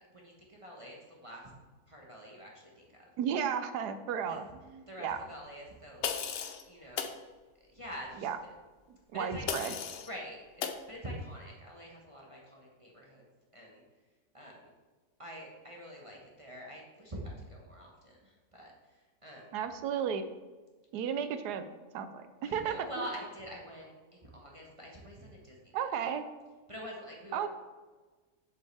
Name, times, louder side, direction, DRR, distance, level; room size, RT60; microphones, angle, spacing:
voice 1, 0.1-1.5 1.9-3.1 4.3-4.4 4.9-6.2 6.6-7.1 7.6-8.5 9.1-9.4 10.1-13.2 13.5-13.8 14.3-14.7 15.2-19.5 22.4-25.8 26.7-27.5, equal, 20° right, -2 dB, 1.1 m, -46 dB
voice 2, 3.2-5.2 8.2-8.4 8.9-9.7 19.5-20.3 20.9-21.6 21.9-23.1 25.7-26.3 27.3-27.5, right 8 dB, 75° right, 10 dB, 1.2 m, -34 dB
sound 1, 6.0-6.6 7.0-7.2 9.5-10.1 10.6-10.8, left 7 dB, 70° left, 0.6 m, -35 dB
7.6 x 7.3 x 3.4 m, 1.3 s
omnidirectional pair, 1.8 m